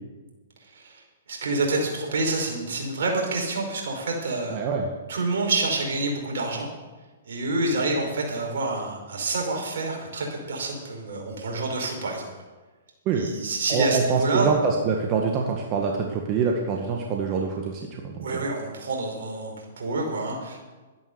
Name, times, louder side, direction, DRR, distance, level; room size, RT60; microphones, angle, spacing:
voice 1, 1.3-4.6 5.1-6.7 7.2-12.3 13.1-14.5 18.2-20.6, right 2 dB, 65° right, 0 dB, 5.0 m, -27 dB
voice 2, 4.5-4.9 13.1-13.3 13.7-18.3, right 5 dB, 35° right, 1 dB, 1.8 m, -25 dB
13.0 x 10.5 x 7.0 m, 1.3 s
hypercardioid pair, 125°, 0 cm